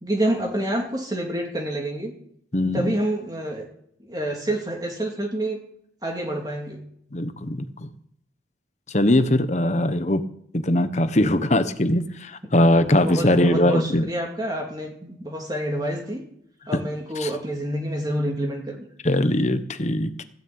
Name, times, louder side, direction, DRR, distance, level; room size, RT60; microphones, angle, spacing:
voice 1, 0.0-2.1 2.7-3.7 4.1-5.6 6.0-6.8 12.9-16.2 16.7-18.9, right 1 dB, 20° right, 0 dB, 2.4 m, -28 dB
voice 2, 2.5-2.9 7.1-7.9 8.9-10.2 10.5-14.1 17.2-17.3 19.0-20.2, left 1 dB, 40° left, 11 dB, 1.1 m, -21 dB
15.5 x 7.3 x 8.8 m, 0.69 s
head